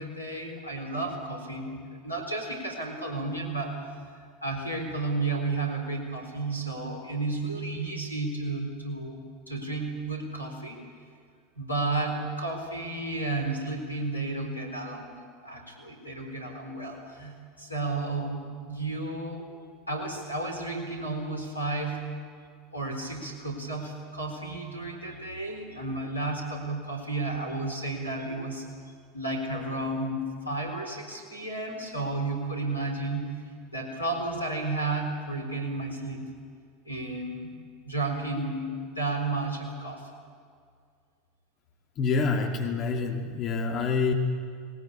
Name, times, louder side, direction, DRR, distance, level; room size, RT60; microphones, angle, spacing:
voice 1, 0.0-3.9 4.4-10.8 11.6-15.1 15.4-19.5 19.9-22.1 22.7-28.7 29.1-33.4 33.7-36.3 36.8-37.6 37.8-40.1, right 2 dB, 90° left, 1 dB, 4.0 m, -32 dB
voice 2, 42.0-44.1, left 4 dB, 40° left, 2 dB, 2.2 m, -27 dB
20.5 x 20.0 x 8.8 m, 2.1 s
figure-of-eight pair, 80°, 0 cm